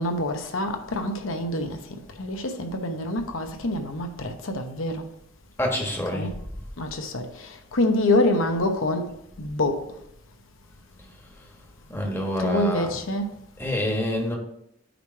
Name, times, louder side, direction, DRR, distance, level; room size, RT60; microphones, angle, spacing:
voice 1, 0.0-5.0 6.1-6.4 6.8-9.1 9.4-9.8 12.4-13.3, left 1 dB, 85° left, 0.9 m, -26 dB
voice 2, 5.6-6.3 11.9-13.0 13.6-14.4, left 1 dB, 10° left, 1.3 m, -27 dB
9.1 x 3.3 x 4.5 m
head